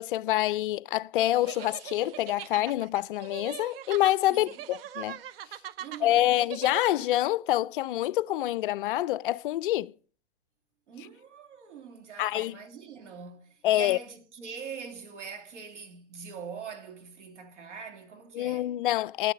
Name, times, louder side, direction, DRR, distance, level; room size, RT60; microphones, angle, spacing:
voice 1, 0.0-5.2 6.0-9.9 12.2-12.6 13.6-14.0 18.3-19.3, left 14 dB, 50° left, 0.4 m, -26 dB
sound 1, 1.2-7.2, right 11 dB, 55° right, 0.7 m, -42 dB
voice 2, 5.8-6.2 10.9-18.7, right 6 dB, 80° right, 2.8 m, -43 dB
12.0 x 7.2 x 6.6 m
hypercardioid pair, 140°, 35 cm